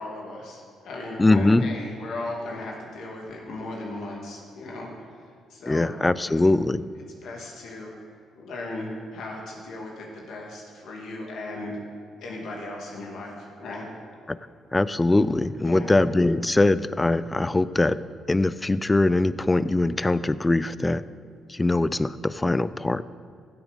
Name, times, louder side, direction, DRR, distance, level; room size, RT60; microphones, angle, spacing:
voice 1, 0.0-4.9 5.5-5.9 6.2-6.3 7.2-7.9 8.3-11.8 12.2-13.9 15.6-16.0, left 2 dB, 75° left, -1 dB, 2.5 m, -36 dB
voice 2, 1.2-1.7 5.7-6.9 14.3-14.4 14.7-18.0 18.3-21.0 21.5-23.0, left 2 dB, 15° left, 16 dB, 0.4 m, -22 dB
15.5 x 8.0 x 5.3 m, 2.3 s
cardioid pair, 90°, 0 cm